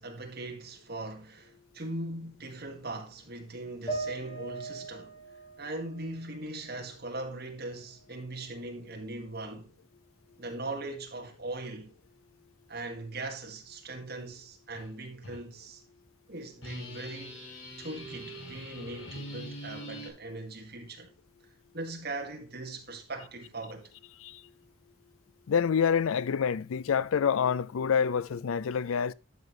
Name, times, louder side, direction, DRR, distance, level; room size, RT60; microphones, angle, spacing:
voice 1, 0.0-5.2 5.6-9.7 10.4-11.9 12.7-15.8 16.3-17.4 17.8-21.1 21.7-23.9, right 2 dB, 50° right, 1.9 m, -40 dB
sound 1, 3.9-7.3 7.7-8.7, right 3 dB, 25° left, 2.5 m, -41 dB
sound 2, 14.7-14.9 15.2-15.4 16.6-20.1, equal, 75° left, 3.0 m, -43 dB
voice 2, 25.5-29.1, left 7 dB, 90° left, 0.4 m, -27 dB
12.0 x 6.4 x 3.2 m
head